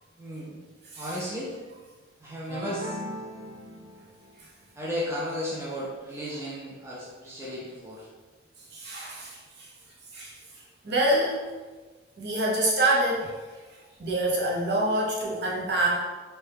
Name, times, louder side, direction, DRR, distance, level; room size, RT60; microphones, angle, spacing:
voice 1, 0.2-0.6 1.0-1.5 2.2-3.0 4.7-8.1, equal, 15° right, -7 dB, 0.4 m, -34 dB
sound 1, 2.5-4.3, equal, 80° right, 1.2 m, -38 dB
voice 2, 8.7-9.4 10.1-10.3 10.8-11.4 12.2-13.3 14.0-16.0, right 1 dB, 55° right, -3 dB, 0.6 m, -25 dB
2.8 x 2.2 x 3.3 m, 1.3 s
head